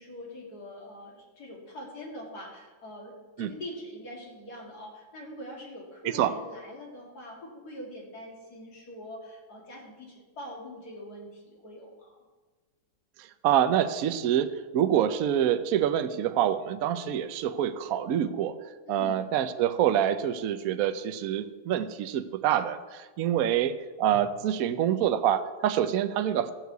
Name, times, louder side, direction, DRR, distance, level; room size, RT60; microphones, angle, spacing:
voice 1, 0.0-12.2 18.9-19.3, left 1 dB, 50° left, -2 dB, 2.7 m, -43 dB
voice 2, 13.2-18.6 18.9-26.5, right 10 dB, 70° right, 10 dB, 0.8 m, -26 dB
13.5 x 4.7 x 8.0 m, 1.3 s
omnidirectional pair, 2.2 m